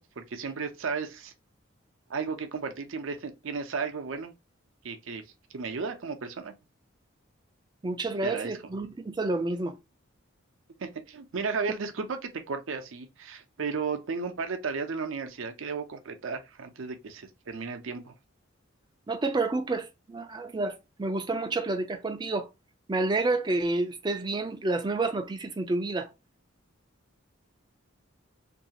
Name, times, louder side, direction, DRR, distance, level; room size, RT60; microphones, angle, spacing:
voice 1, 0.0-1.3 2.1-4.3 4.8-5.2 5.5-6.5 8.2-8.5 10.8-18.1, right 5 dB, 70° right, 0.5 m, -34 dB
voice 2, 7.8-9.7 19.1-22.5 22.9-26.1, right 2 dB, 20° right, 0.3 m, -29 dB
2.6 x 2.3 x 2.8 m
head